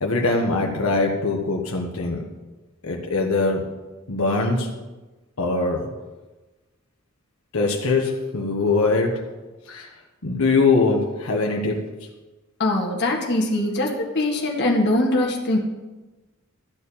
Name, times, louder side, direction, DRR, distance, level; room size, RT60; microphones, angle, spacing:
voice 1, 0.0-2.2 2.8-3.7 4.1-4.7 5.4-5.9 7.5-9.3 9.7-9.9 10.2-11.9, left 3 dB, 90° left, 0 dB, 1.4 m, -22 dB
voice 2, 12.6-15.6, left 1 dB, 55° left, 0 dB, 1.9 m, -22 dB
13.5 x 4.7 x 8.7 m, 1.1 s
head